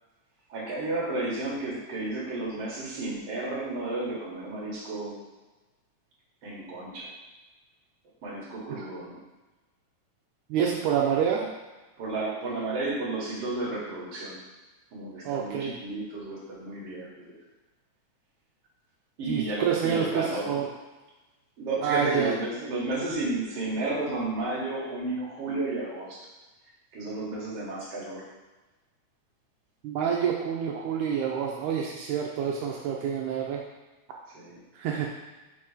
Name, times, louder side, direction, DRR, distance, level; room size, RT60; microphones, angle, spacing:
voice 1, 0.5-5.2 6.4-7.1 8.2-9.2 12.0-14.4 14.9-17.4 19.2-20.6 21.6-26.2 26.9-28.3 34.3-34.6, right 2 dB, 55° right, -5 dB, 2.6 m, -32 dB
voice 2, 10.5-11.5 15.2-15.7 19.3-20.7 21.8-22.3 29.8-33.6 34.8-35.1, right 8 dB, 85° right, -1 dB, 2.2 m, -27 dB
6.0 x 4.3 x 5.0 m, 1.2 s
omnidirectional pair, 3.5 m